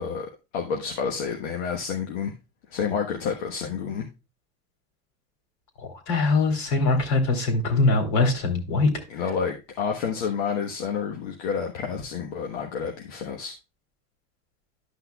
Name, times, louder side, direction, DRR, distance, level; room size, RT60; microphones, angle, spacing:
voice 1, 0.0-2.3 2.7-4.1 9.1-13.5, left 6 dB, 85° left, 2 dB, 1.3 m, -29 dB
voice 2, 6.1-8.9, left 3 dB, 65° left, 4 dB, 3.3 m, -22 dB
12.0 x 6.0 x 2.3 m, 0.28 s
supercardioid pair, 105°, 33 cm